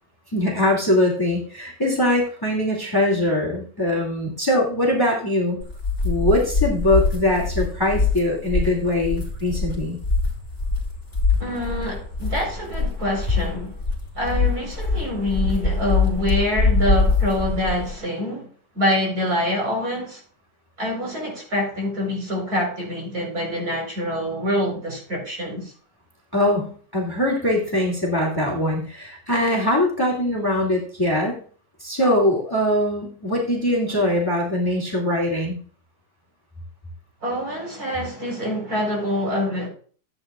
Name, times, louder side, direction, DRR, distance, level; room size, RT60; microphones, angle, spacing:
voice 1, 0.3-5.6 6.0-10.0 26.3-31.4 31.8-35.6, left 1 dB, 10° left, 2.4 m, -22 dB
sound 1, 5.6-17.9, left 3 dB, 30° left, 3.8 m, -23 dB
voice 2, 11.4-13.8 14.1-18.5 18.7-20.2 20.8-25.7 37.2-39.7, left 1 dB, 60° right, 4.6 m, -25 dB
14.5 x 8.9 x 2.4 m
omnidirectional pair, 1.9 m